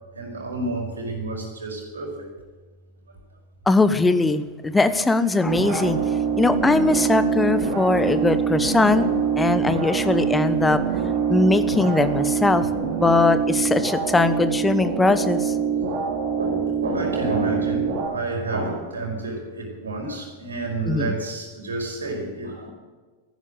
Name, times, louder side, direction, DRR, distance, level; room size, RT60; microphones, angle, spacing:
voice 1, 0.1-2.3 9.5-9.6 9.9-10.2 12.9-13.2 16.4-22.7, right 2 dB, 70° right, 1 dB, 5.1 m, -30 dB
voice 2, 3.7-6.0 6.4-9.1 9.4-10.8 11.3-15.5 20.9-21.1, left 3 dB, 10° left, 12 dB, 1.1 m, -20 dB
sound 1, 5.4-18.1, right 6 dB, 50° right, 4.7 m, -24 dB
14.5 x 11.5 x 8.1 m, 1.4 s
figure-of-eight pair, 90°, 0 cm